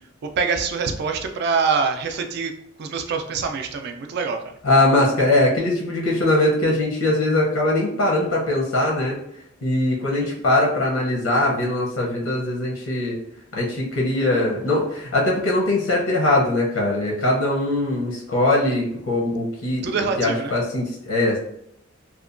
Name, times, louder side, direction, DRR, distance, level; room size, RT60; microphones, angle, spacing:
voice 1, 0.4-2.5 2.8-4.4 10.2-10.4 18.6-18.7 19.8-20.5, right 5 dB, 55° right, 6 dB, 0.3 m, -25 dB
voice 2, 4.6-9.2 9.6-13.2 13.5-21.4, left 1 dB, 90° left, -2 dB, 0.7 m, -21 dB
2.8 x 2.2 x 2.5 m, 0.73 s
head